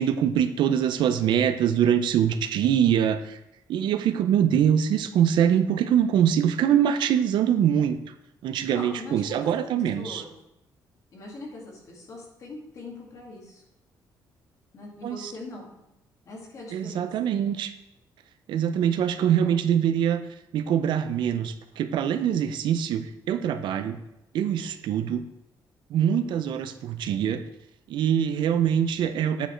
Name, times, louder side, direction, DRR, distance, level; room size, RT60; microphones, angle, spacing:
voice 1, 0.0-3.4 3.7-8.0 8.4-10.2 15.0-15.3 16.7-17.7 18.5-20.2 20.5-24.0 24.3-25.2 25.9-27.4 27.9-29.5, right 9 dB, 70° right, 9 dB, 0.6 m, -23 dB
voice 2, 8.7-9.5 10.0-10.3 11.1-13.6 14.7-15.7 16.3-17.1 18.9-19.5, left 2 dB, 40° left, -2 dB, 2.2 m, -42 dB
8.8 x 5.2 x 4.5 m, 0.87 s
cardioid pair, 165°, 8 cm